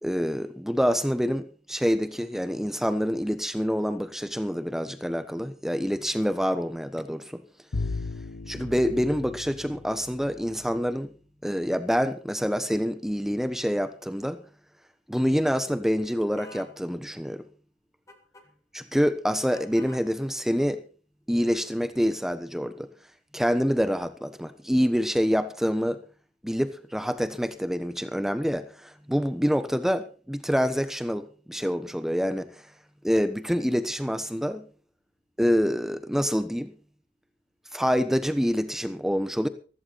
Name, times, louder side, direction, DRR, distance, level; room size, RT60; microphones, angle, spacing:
voice 1, 0.0-7.4 8.5-11.1 11.4-14.4 15.1-17.4 18.7-20.8 21.3-22.9 23.3-26.0 26.4-32.5 33.0-34.6 35.4-36.7 37.7-39.5, equal, ahead, 1.1 m, -26 dB
Bowed string instrument, 7.7-10.8, left 3 dB, 75° left, 0.9 m, -36 dB
sound 1, 16.4-16.7 18.1-18.5 19.5-20.1, left 1 dB, 15° left, 2.3 m, -48 dB
15.5 x 15.0 x 4.2 m
head